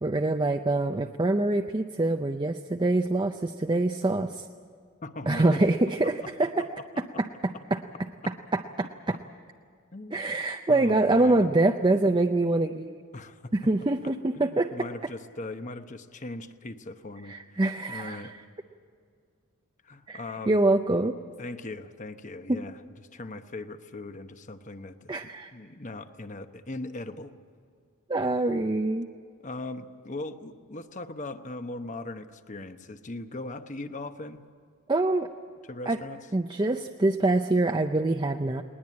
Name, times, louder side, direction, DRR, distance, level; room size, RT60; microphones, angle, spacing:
voice 1, 0.0-4.4 5.3-6.7 7.7-7.8 8.3-9.2 10.1-13.0 13.5-14.7 17.2-18.4 20.1-21.2 22.5-22.6 25.1-25.5 28.1-29.1 34.9-35.3 35.9-36.0 36.3-38.6, right 2 dB, 20° right, 5 dB, 0.5 m, -25 dB
voice 2, 5.0-5.6 6.0-7.0 9.9-10.3 10.7-11.5 13.1-13.4 14.0-17.4 17.9-18.3 19.8-20.6 21.4-22.8 23.1-25.1 25.5-27.3 29.4-34.4 35.7-36.2, left 2 dB, 35° left, 9 dB, 0.9 m, -39 dB
20.0 x 19.5 x 8.6 m, 2.2 s
head